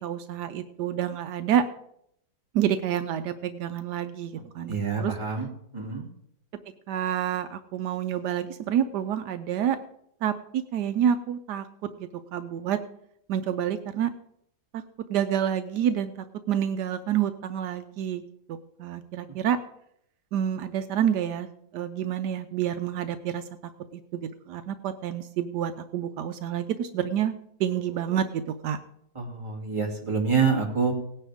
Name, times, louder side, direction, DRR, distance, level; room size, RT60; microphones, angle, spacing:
voice 1, 0.0-1.6 2.5-5.1 6.9-9.8 10.2-11.7 12.0-12.8 13.3-14.1 14.7-14.8 15.1-18.2 18.5-19.6 20.3-23.4 24.1-27.3 27.6-28.8, right 9 dB, 80° right, 10 dB, 1.2 m, -28 dB
voice 2, 4.7-5.5 5.7-6.0 29.1-30.9, right 5 dB, 15° right, -2 dB, 2.6 m, -26 dB
18.0 x 9.9 x 3.5 m, 0.74 s
omnidirectional pair, 1.8 m